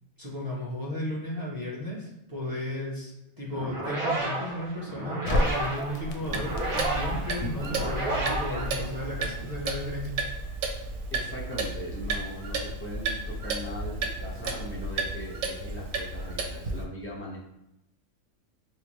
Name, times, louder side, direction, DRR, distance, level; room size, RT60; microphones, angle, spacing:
voice 1, 0.2-10.2, left 1 dB, 20° right, -6 dB, 0.8 m, -34 dB
sound 1, 3.5-9.4, right 2 dB, 40° right, 0.4 m, -32 dB
Crackle, 5.2-11.4, left 1 dB, 85° left, 1.0 m, -35 dB
Clock, 6.3-16.8, right 3 dB, 85° right, 1.0 m, -33 dB
voice 2, 11.1-17.4, equal, 10° left, -6 dB, 0.9 m, -39 dB
4.5 x 2.1 x 3.0 m, 0.86 s
omnidirectional pair, 1.3 m